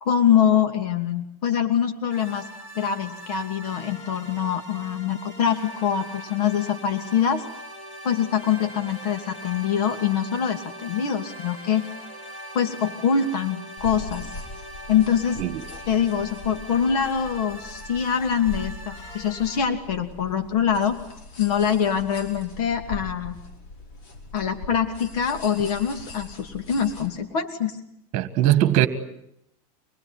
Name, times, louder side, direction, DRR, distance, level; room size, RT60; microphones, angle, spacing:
voice 1, 0.0-2.5 2.8-7.4 8.0-11.8 12.5-14.3 14.9-15.4 15.9-21.0 21.4-23.4 24.3-27.8, left 8 dB, 70° left, 2.7 m, -24 dB
sound 1, 2.1-19.6, equal, 30° left, 7.3 m, -41 dB
sound 2, 13.8-27.1, left 2 dB, 55° left, 5.1 m, -41 dB
voice 2, 28.1-28.9, right 13 dB, 35° right, 1.7 m, -20 dB
25.5 x 20.5 x 9.8 m
supercardioid pair, 160°, 20 cm